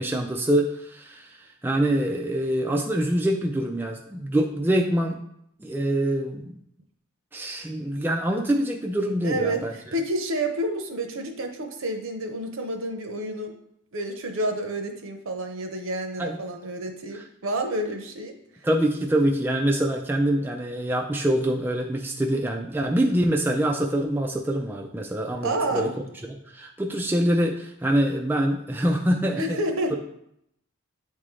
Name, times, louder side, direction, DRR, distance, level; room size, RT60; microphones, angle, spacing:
voice 1, 0.0-1.4 1.6-5.2 5.6-6.5 7.3-9.7 16.2-16.4 18.6-25.9 26.5-29.4, right 1 dB, 10° right, 1 dB, 0.3 m, -25 dB
voice 2, 9.2-13.6 13.9-18.4 25.4-25.9 29.4-30.0, right 1 dB, 60° right, 5 dB, 0.8 m, -29 dB
8.2 x 3.7 x 3.2 m, 0.75 s
head